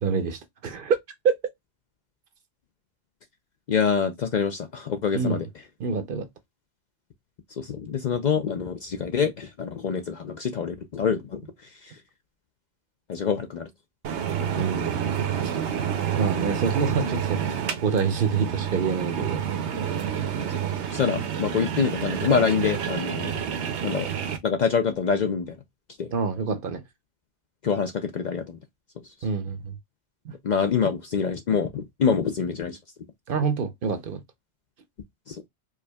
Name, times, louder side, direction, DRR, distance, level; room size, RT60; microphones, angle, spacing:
voice 1, 0.0-1.0 5.1-5.4 5.8-6.3 14.6-15.0 15.4-15.6 16.2-19.4 26.1-26.8 29.2-29.7 30.3-30.4 33.3-34.2, right 5 dB, 60° right, 0.7 m, -27 dB
voice 2, 3.7-5.5 7.6-11.4 11.8-11.9 13.1-13.7 14.4-14.7 20.9-23.3 23.8-24.1 24.4-25.6 26.0-26.1 27.6-28.6 30.4-32.8 35.3-35.4, left 6 dB, 55° left, 0.5 m, -26 dB
sound 1, 14.0-24.4, right 8 dB, 85° right, 1.0 m, -29 dB
4.7 x 2.5 x 2.2 m
omnidirectional pair, 1.1 m